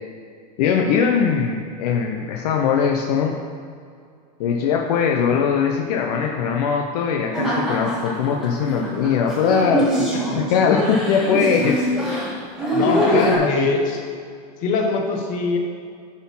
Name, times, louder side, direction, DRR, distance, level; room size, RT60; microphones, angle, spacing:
voice 1, 0.6-3.4 4.4-11.9 12.8-12.9 13.1-13.7, left 6 dB, 70° left, 1 dB, 0.8 m, -21 dB
sound 1, 7.3-13.4, equal, ahead, 1.7 m, -23 dB
voice 2, 12.7-14.0 14.6-15.6, left 3 dB, 40° left, 2 dB, 1.3 m, -23 dB
9.9 x 4.4 x 5.5 m, 2.3 s
supercardioid pair, 155°, 20 cm